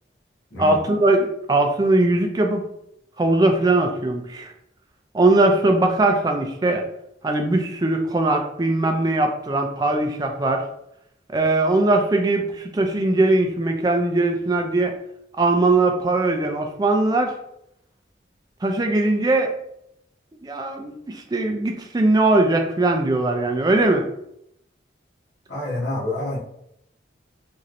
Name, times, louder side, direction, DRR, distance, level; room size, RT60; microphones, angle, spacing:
voice 1, 0.6-2.6 3.2-4.5 5.1-6.8 7.2-10.6 11.3-14.9 15.4-17.3 18.6-19.5 20.4-24.1, right 2 dB, 20° right, 4 dB, 0.3 m, -20 dB
voice 2, 25.5-26.4, left 1 dB, 75° left, -6 dB, 1.2 m, -27 dB
3.1 x 2.7 x 2.5 m, 0.76 s
head